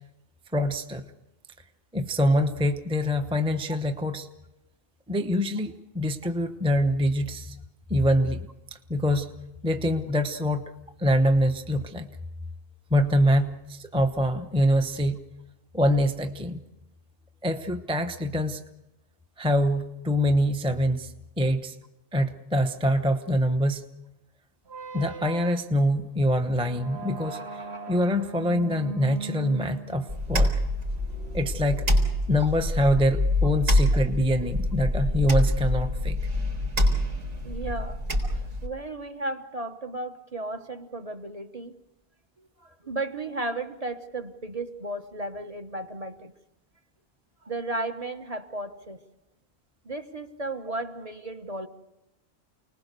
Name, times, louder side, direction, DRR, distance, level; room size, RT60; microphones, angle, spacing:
voice 1, 0.5-1.0 1.9-4.3 5.1-7.6 7.9-8.5 8.9-9.3 9.6-10.6 11.0-12.1 12.9-15.2 15.7-16.6 17.4-18.6 19.4-21.1 21.4-21.7 22.1-23.8 24.9-27.6 27.9-30.6 31.3-31.9 32.3-36.2, equal, 5° right, 7 dB, 0.9 m, -24 dB
sound 1, 24.7-32.5, right 3 dB, 55° right, 1.6 m, -40 dB
sound 2, 30.1-38.7, left 1 dB, 80° right, 4.5 m, -26 dB
voice 2, 37.4-38.0 38.3-41.8 42.4-46.3 47.4-49.0 49.8-51.7, right 2 dB, 30° right, 6 dB, 1.3 m, -34 dB
29.5 x 20.0 x 6.8 m, 0.95 s
omnidirectional pair, 1.3 m